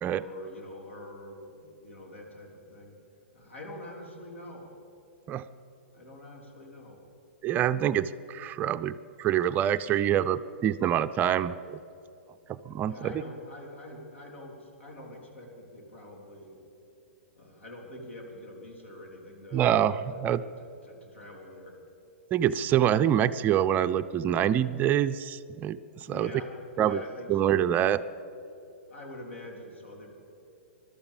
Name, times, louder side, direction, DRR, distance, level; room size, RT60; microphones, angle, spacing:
voice 1, 0.0-2.9 3.3-4.7 5.9-7.0 12.7-16.6 17.3-21.8 26.0-28.0 28.9-30.2, left 1 dB, 75° left, 0 dB, 3.7 m, -45 dB
voice 2, 7.4-11.8 12.5-13.1 19.5-20.4 22.3-25.8 26.1-26.3 26.8-27.0 27.3-28.0, right 10 dB, 25° right, 11 dB, 0.4 m, -26 dB
21.0 x 12.5 x 5.3 m, 2.8 s
figure-of-eight pair, 110°, 7 cm